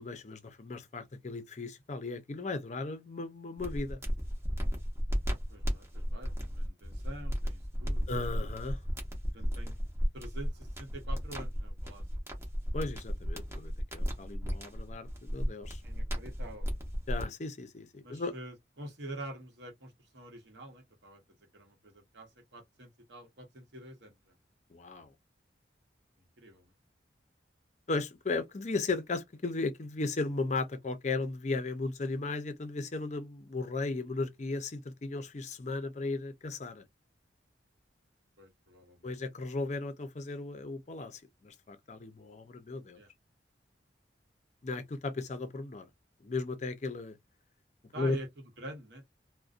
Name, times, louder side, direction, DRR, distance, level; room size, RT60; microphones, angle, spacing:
voice 1, 0.0-4.0 8.1-8.8 12.7-15.8 17.1-18.3 24.7-25.1 27.9-36.8 39.0-43.0 44.6-45.9 46.2-47.2 48.0-48.2, left 3 dB, 40° left, 0.5 m, -36 dB
sound 1, 3.6-17.2, equal, 15° right, 0.7 m, -34 dB
voice 2, 5.5-8.2 9.3-9.8 10.1-12.3 12.8-12.9 15.8-16.8 18.0-21.2 21.5-24.3 26.4-26.7 38.4-39.1 43.0-43.1 47.9-49.1, right 1 dB, 70° right, 0.9 m, -47 dB
2.5 x 2.1 x 2.4 m
head